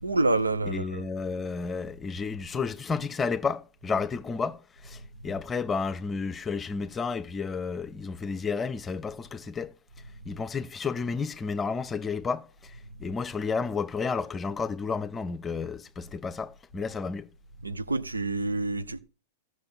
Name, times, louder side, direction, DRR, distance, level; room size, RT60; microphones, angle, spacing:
voice 1, 0.0-1.0 17.6-19.0, right 2 dB, 85° right, 0.7 m, -27 dB
voice 2, 0.7-9.7 10.3-12.7 13.0-17.3, left 5 dB, 20° left, 0.6 m, -31 dB
14.5 x 6.3 x 5.5 m
figure-of-eight pair, 100°, 0 cm